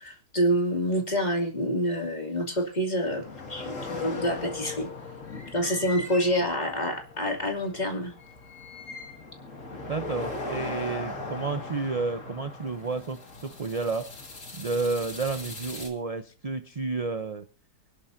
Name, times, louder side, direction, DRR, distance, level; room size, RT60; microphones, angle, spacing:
voice 1, 0.0-3.2 3.5-4.9 5.5-8.1, equal, 25° left, 3 dB, 2.7 m, -27 dB
sound 1, 3.0-15.9, left 3 dB, 50° left, 2.8 m, -39 dB
voice 2, 9.9-14.1 14.5-17.5, right 4 dB, 35° right, 9 dB, 0.6 m, -31 dB
25.0 x 11.0 x 2.7 m, 0.37 s
omnidirectional pair, 1.7 m